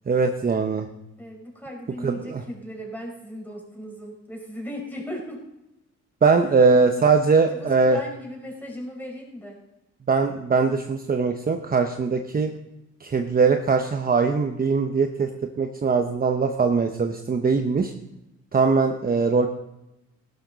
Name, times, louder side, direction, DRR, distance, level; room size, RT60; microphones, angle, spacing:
voice 1, 0.1-0.9 2.0-2.4 6.2-8.0 10.1-12.5 13.0-15.3 15.6-17.9 18.5-19.5, right 4 dB, 30° right, 5 dB, 0.9 m, -21 dB
voice 2, 1.2-5.4 7.5-9.6, equal, 5° left, -1 dB, 5.3 m, -37 dB
16.0 x 12.0 x 4.0 m, 0.90 s
cardioid pair, 90°, 30 cm